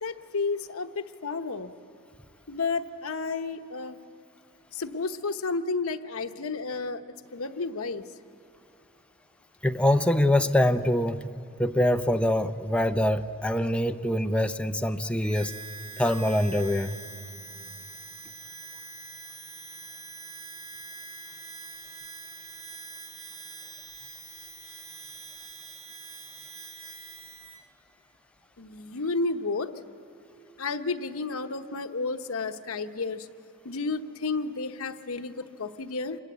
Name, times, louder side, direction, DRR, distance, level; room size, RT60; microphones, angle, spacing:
voice 1, 0.0-1.7 2.5-4.0 4.7-7.0 7.3-8.0 17.6-17.8 28.6-29.7 30.6-33.3 33.6-36.2, left 3 dB, 80° left, 7 dB, 1.0 m, -31 dB
voice 2, 9.6-11.2 11.6-15.5 16.0-16.9, left 1 dB, 5° left, 7 dB, 0.6 m, -24 dB
Harmonica, 15.2-27.6, right 4 dB, 75° right, 1.7 m, -44 dB
26.5 x 21.0 x 8.1 m, 2.8 s
head